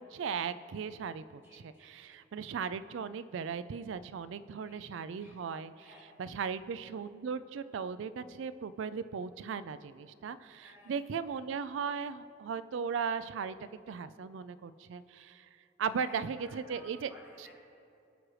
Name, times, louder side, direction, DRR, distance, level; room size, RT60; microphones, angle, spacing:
voice 1, 0.0-5.7 6.2-13.5 13.9-15.5 15.8-17.1, right 6 dB, 70° right, 14 dB, 0.3 m, -37 dB
voice 2, 1.4-2.1 4.6-4.8 5.2-5.4 5.8-6.0 10.6-10.9 11.3-11.4 15.8-17.5, equal, 10° right, -8 dB, 2.2 m, -56 dB
18.0 x 6.1 x 3.2 m, 2.7 s
head